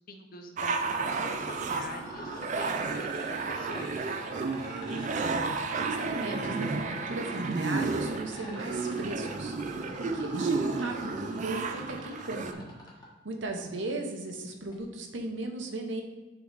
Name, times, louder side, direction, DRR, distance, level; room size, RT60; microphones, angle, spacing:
voice 1, 0.1-4.2, left 1 dB, 45° left, 4 dB, 0.6 m, -44 dB
sound 1, 0.6-12.5, right 4 dB, 35° right, 0.3 m, -32 dB
sound 2, 0.9-13.1 14.7-14.8, left 1 dB, 20° left, 1.3 m, -44 dB
voice 2, 5.2-12.7 13.2-16.0, right 2 dB, 60° right, 3 dB, 0.8 m, -37 dB
9.4 x 3.9 x 3.3 m, 1.2 s
head